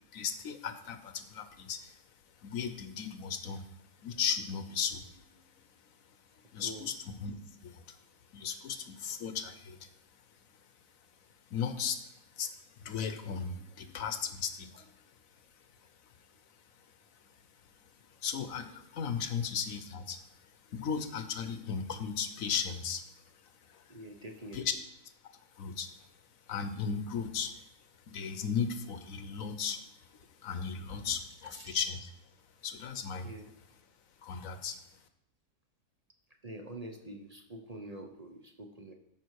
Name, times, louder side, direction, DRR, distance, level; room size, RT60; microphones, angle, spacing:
voice 1, 0.1-1.9 2.4-3.6 4.0-5.1 6.5-6.9 7.2-7.3 7.6-7.8 8.3-9.8 11.5-12.0 12.4-12.5 12.8-14.8 18.2-20.2 20.7-23.0 24.5-24.7 25.6-25.9 26.5-27.5 28.1-29.8 30.4-32.0 32.6-33.3 34.2-34.8, left 6 dB, 60° left, 9 dB, 1.2 m, -35 dB
voice 2, 23.9-24.6 31.4-31.8 33.2-33.5 36.4-38.9, right 1 dB, 40° right, 3 dB, 0.6 m, -46 dB
13.5 x 5.3 x 4.7 m, 0.80 s
omnidirectional pair, 1.7 m